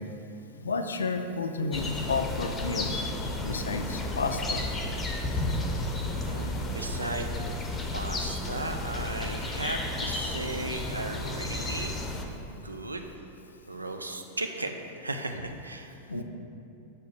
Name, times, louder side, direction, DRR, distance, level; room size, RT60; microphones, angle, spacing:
voice 1, 0.6-2.9 3.4-4.6 16.1-16.2, left 4 dB, 70° left, 7 dB, 0.4 m, -31 dB
sound 1, 1.7-12.2, left 2 dB, 20° left, 0.7 m, -32 dB
voice 2, 6.2-7.3 7.9-11.9 12.5-13.0 13.7-14.7 15.0-16.2, right 2 dB, 80° right, 5 dB, 0.4 m, -36 dB
6.8 x 4.4 x 4.8 m, 2.6 s
figure-of-eight pair, 90°, 0 cm